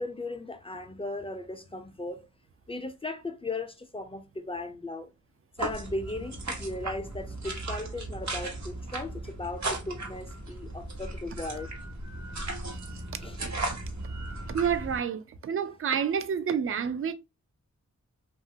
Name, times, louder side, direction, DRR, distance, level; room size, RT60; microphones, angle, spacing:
voice 1, 0.0-2.3 2.7-5.1 5.6-11.7 13.2-13.4, left 2 dB, 20° left, 0.4 m, -37 dB
sound 1, 5.6-15.0, right 2 dB, 70° right, 0.9 m, -36 dB
voice 2, 14.5-17.1, right 7 dB, 45° right, 0.4 m, -29 dB
2.8 x 2.4 x 2.7 m
wide cardioid pair, 95°, 29 cm